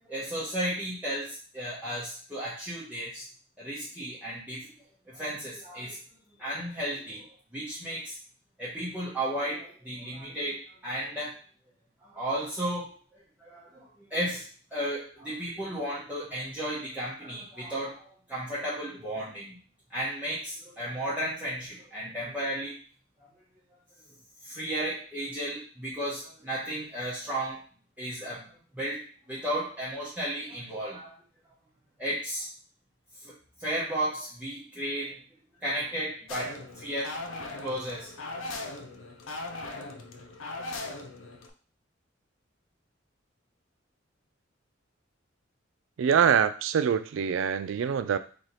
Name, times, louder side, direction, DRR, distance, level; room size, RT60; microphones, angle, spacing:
voice 1, 0.1-3.2 3.6-4.7 5.1-6.0 6.4-7.3 7.5-8.2 8.6-11.4 12.1-12.9 13.4-14.5 14.7-19.6 19.9-22.8 23.2-23.3 24.4-27.6 28.0-28.5 28.7-31.2 32.0-32.5 33.6-35.2 35.6-38.4, right 1 dB, 5° right, -9 dB, 0.9 m, -34 dB
sound 1, 36.3-41.5, left 2 dB, 75° left, 0.5 m, -39 dB
voice 2, 46.0-48.2, right 7 dB, 75° right, 12 dB, 0.3 m, -24 dB
3.1 x 2.9 x 3.9 m, 0.39 s
head